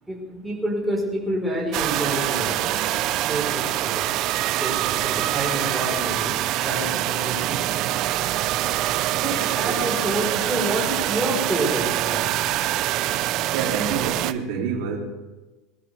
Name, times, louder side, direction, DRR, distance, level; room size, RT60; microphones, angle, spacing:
voice 1, 0.1-4.3 4.6-6.4 6.6-8.6 9.2-12.4, right 1 dB, 5° right, -4 dB, 4.2 m, -29 dB
sound 1, 1.7-14.3, right 14 dB, 50° right, 0.5 m, -25 dB
voice 2, 9.2-9.6 13.5-15.0, right 6 dB, 70° right, 0 dB, 2.7 m, -28 dB
20.5 x 12.5 x 3.4 m, 1.1 s
supercardioid pair, 140°, 0 cm